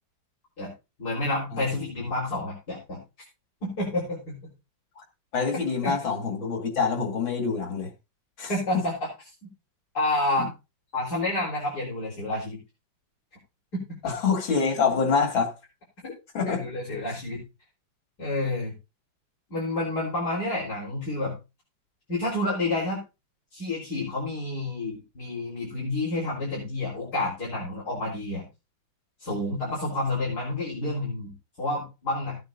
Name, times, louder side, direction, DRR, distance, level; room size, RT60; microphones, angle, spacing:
voice 1, 1.0-3.0 3.6-4.4 5.8-6.0 8.5-8.9 9.9-10.5 10.9-12.6 16.0-16.1 16.5-17.4 18.2-18.7 19.5-21.4 22.1-23.0 23.5-28.4 29.2-32.4, left 2 dB, 55° left, 4.8 m, -29 dB
voice 2, 5.3-7.9 8.4-8.8 10.4-10.5 14.0-15.5 16.3-16.6, left 5 dB, 90° left, 3.1 m, -26 dB
16.5 x 9.3 x 2.7 m
omnidirectional pair, 2.1 m